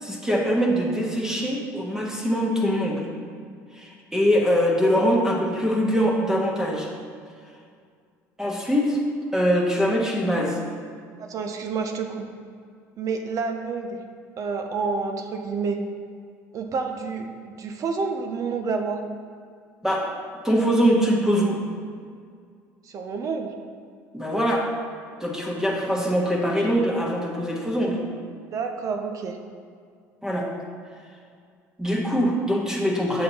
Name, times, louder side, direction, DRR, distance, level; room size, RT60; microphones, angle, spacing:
voice 1, 0.0-3.1 3.7-6.9 8.4-9.0 9.3-10.6 19.8-20.1 20.4-21.6 24.1-24.7 25.2-28.0 30.2-30.5 31.8-33.2, equal, 5° right, -2 dB, 1.3 m, -23 dB
voice 2, 11.2-12.3 13.0-14.0 14.4-15.8 16.5-19.0 22.9-23.5 28.5-29.4, right 4 dB, 45° right, 5 dB, 0.6 m, -29 dB
7.5 x 5.6 x 2.9 m, 2.2 s
hypercardioid pair, 75°, 8 cm